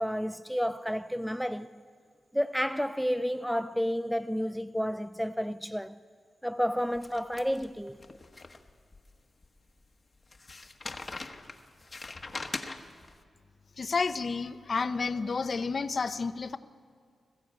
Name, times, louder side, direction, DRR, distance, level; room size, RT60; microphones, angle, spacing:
voice 1, 0.0-1.7 2.3-6.0 6.4-8.0, equal, ahead, 0.4 m, -31 dB
sound 1, 7.0-9.0 9.4-9.5 10.3-13.1, left 3 dB, 35° left, 1.2 m, -41 dB
voice 2, 13.8-16.6, left 4 dB, 50° left, 0.7 m, -30 dB
21.0 x 15.0 x 8.8 m
wide cardioid pair, 95°, 0 cm